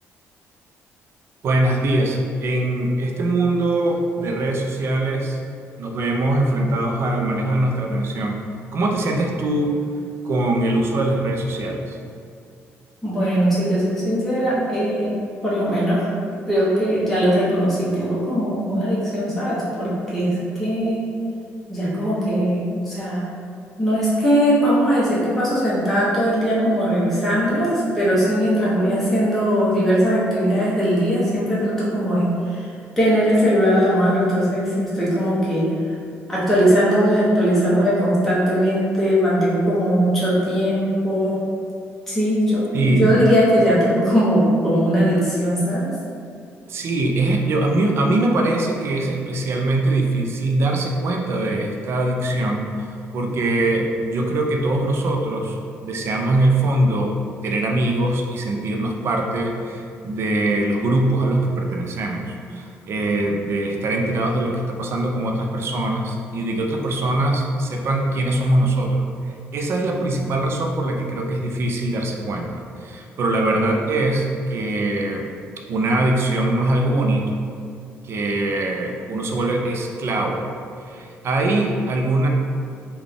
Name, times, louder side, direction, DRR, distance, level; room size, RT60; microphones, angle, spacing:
voice 1, 1.4-5.4 5.8-8.4 8.7-9.7 10.2-12.0 42.7-43.1 46.7-52.9 53.1-55.6 55.8-57.2 57.4-69.1 69.5-75.3 75.7-77.4 78.0-80.5 80.9-82.3, right 2 dB, 55° right, 2 dB, 0.5 m, -22 dB
voice 2, 13.0-15.1 15.4-16.1 16.5-21.0 21.7-23.2 23.8-32.3 33.0-35.6 36.3-41.3 42.1-45.9, equal, 5° left, -9 dB, 0.9 m, -19 dB
3.8 x 2.3 x 3.4 m, 2.3 s
cardioid pair, 115°, 5 cm